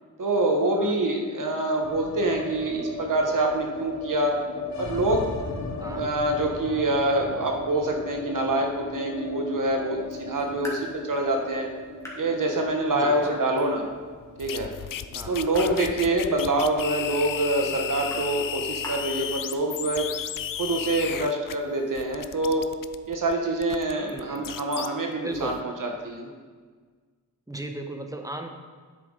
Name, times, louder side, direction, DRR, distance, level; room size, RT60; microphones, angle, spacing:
voice 1, 0.2-4.4 4.8-5.3 5.9-11.7 12.2-13.9 14.4-14.7 15.3-20.1 20.6-22.7 23.1-26.3, right 2 dB, 65° right, 2 dB, 1.2 m, -26 dB
sound 1, 1.8-17.9 18.2-18.3 18.6-19.3, left 3 dB, 55° left, 0.9 m, -37 dB
Raindrop / Drip, 10.0-19.9, equal, 10° left, 2.3 m, -45 dB
voice 2, 12.9-13.3 15.1-15.4 16.0-16.1 24.1-24.5 25.2-25.6 27.5-28.5, right 1 dB, 10° right, 4 dB, 0.9 m, -36 dB
sound 2, 14.4-21.6 22.0-24.9 25.3-25.6, left 9 dB, 70° left, 0.5 m, -34 dB
10.0 x 7.6 x 3.8 m, 1.5 s
wide cardioid pair, 100°, 34 cm